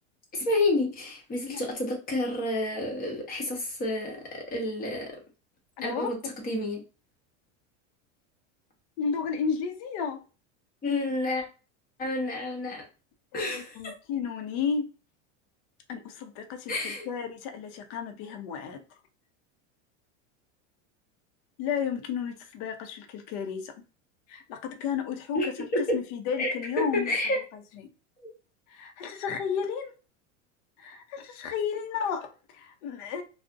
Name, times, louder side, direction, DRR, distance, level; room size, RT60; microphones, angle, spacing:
voice 1, 0.3-5.1 5.8-6.8 10.8-11.4 12.0-12.9 13.3-13.9 16.7-17.1 25.3-25.5 25.7-26.0 26.4-27.4 28.2-28.3, left 2 dB, 25° left, 0.9 m, -29 dB
voice 2, 5.8-6.1 9.0-10.2 13.3-14.9 15.9-18.8 21.6-23.7 24.3-27.2 28.7-29.9 30.8-33.2, left 6 dB, 55° left, 0.6 m, -33 dB
2.4 x 2.0 x 2.5 m
supercardioid pair, 135°, 38 cm